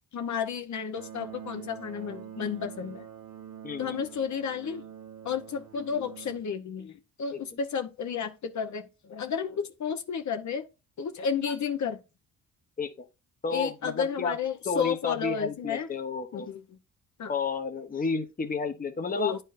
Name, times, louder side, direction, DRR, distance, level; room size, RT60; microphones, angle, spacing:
voice 1, 0.1-3.1 3.8-4.8 5.2-10.7 11.0-12.0 13.5-15.9 16.3-16.8 17.2-17.3 19.2-19.4, left 6 dB, 55° left, 1.0 m, -32 dB
sound 1, 1.0-6.4, right 9 dB, 65° right, 1.3 m, -45 dB
voice 2, 3.6-4.0 7.3-7.4 12.8-12.9 13.4-14.3 14.6-16.5 17.3-19.3, left 4 dB, 25° left, 1.0 m, -31 dB
10.0 x 4.5 x 2.6 m
cardioid pair, 110°, 34 cm